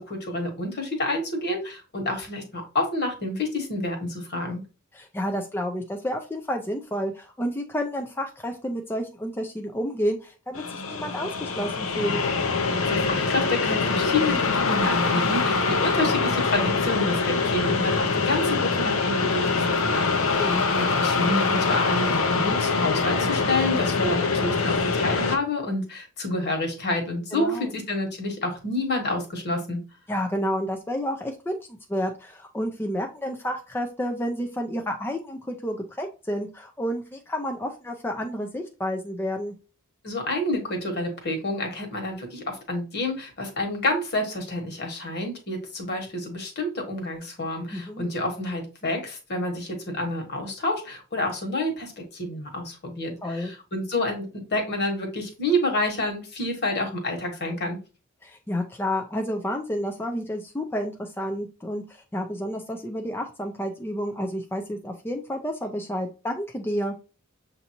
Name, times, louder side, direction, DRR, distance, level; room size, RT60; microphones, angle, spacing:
voice 1, 0.0-4.6 12.8-29.8 40.0-57.8, left 1 dB, 55° left, 3 dB, 1.4 m, -28 dB
voice 2, 4.9-12.2 20.4-20.6 27.3-27.7 30.1-31.6 31.9-39.5 47.7-48.1 53.2-53.5 58.2-66.9, equal, 10° left, 2 dB, 0.4 m, -30 dB
sound 1, 10.5-25.4, left 4 dB, 75° left, 0.7 m, -24 dB
6.9 x 2.6 x 2.8 m, 0.33 s
head